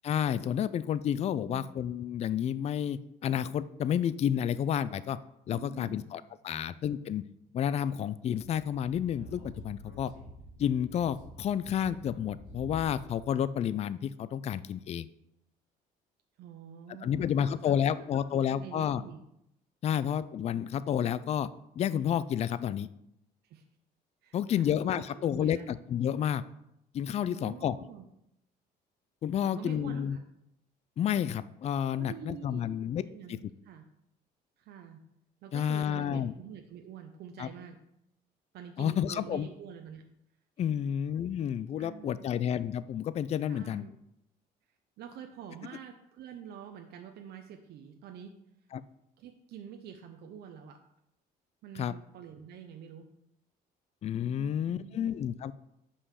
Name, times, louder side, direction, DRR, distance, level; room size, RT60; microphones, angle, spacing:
voice 1, 0.0-5.2 5.5-7.2 7.5-10.1 10.6-15.1 17.0-19.0 19.8-21.5 21.8-22.9 24.3-26.4 26.9-27.8 29.2-30.2 31.0-33.0 33.3-33.4 35.5-36.3 37.4-37.5 38.8-39.5 40.6-43.8 48.7-48.8 51.8-51.9 54.0-55.5, left 9 dB, 40° left, 16 dB, 0.4 m, -30 dB
voice 2, 5.5-6.1 6.5-6.7 16.4-17.7 18.3-19.2 19.9-20.1 23.4-23.6 24.2-25.7 27.3-28.0 29.4-30.2 32.0-32.7 33.1-33.8 34.6-35.0 35.4-37.8 38.5-40.0 40.7-40.9 41.8-42.3 43.5-43.9 45.0-48.3 49.2-50.8 51.6-53.1 54.3-55.1, right 9 dB, 75° right, 4 dB, 0.7 m, -47 dB
Speech / Wind, 8.4-13.3, equal, 90° left, 3.3 m, -48 dB
5.5 x 5.5 x 6.4 m, 0.80 s
cardioid pair, 110°, 17 cm